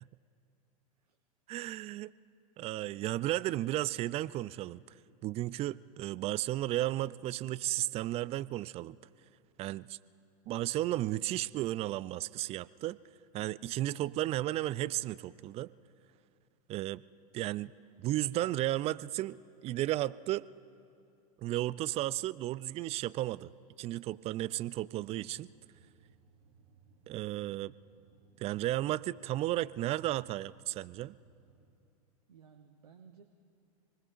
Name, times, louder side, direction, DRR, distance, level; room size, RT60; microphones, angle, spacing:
voice 1, 1.5-2.1 2.6-4.8 5.2-9.0 9.6-10.0 10.5-13.0 13.3-15.7 16.7-17.0 17.3-17.7 18.0-20.5 21.4-23.5 23.8-25.5 27.1-27.7 28.4-31.1, right 15 dB, 35° right, 19 dB, 0.4 m, -34 dB
sound 1, 25.0-31.7, right 5 dB, 60° right, 3.6 m, -64 dB
voice 2, 32.3-33.2, right 6 dB, 85° right, 6 dB, 0.9 m, -57 dB
28.0 x 20.0 x 2.5 m, 2.5 s
hypercardioid pair, 95°, 19 cm